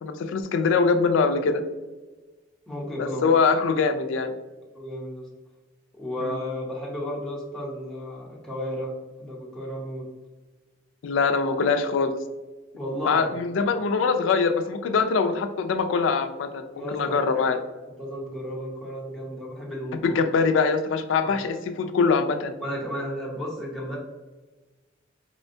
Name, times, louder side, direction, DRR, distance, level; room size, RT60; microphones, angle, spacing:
voice 1, 0.0-1.6 3.0-4.3 6.2-6.4 11.0-12.2 13.0-17.6 20.0-22.5, left 5 dB, 70° left, 8 dB, 0.3 m, -23 dB
voice 2, 2.7-3.2 4.7-5.3 5.9-8.9 9.2-10.0 12.8-13.3 16.7-17.4 18.0-20.2 21.2-21.4 22.6-24.0, equal, 5° left, -5 dB, 0.7 m, -33 dB
4.2 x 2.1 x 2.6 m, 1.2 s
head